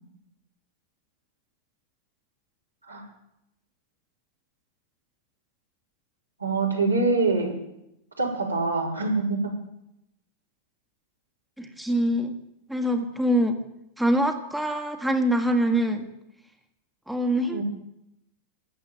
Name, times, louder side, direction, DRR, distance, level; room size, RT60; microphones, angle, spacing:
voice 1, 6.4-7.6 8.2-9.5 17.5-17.6, right 3 dB, 85° right, -4 dB, 4.8 m, -25 dB
voice 2, 11.6-12.3 12.7-13.6 14.0-16.1 17.1-17.6, right 1 dB, 5° right, 5 dB, 1.6 m, -24 dB
13.0 x 8.1 x 9.3 m, 0.83 s
figure-of-eight pair, 90°, 0 cm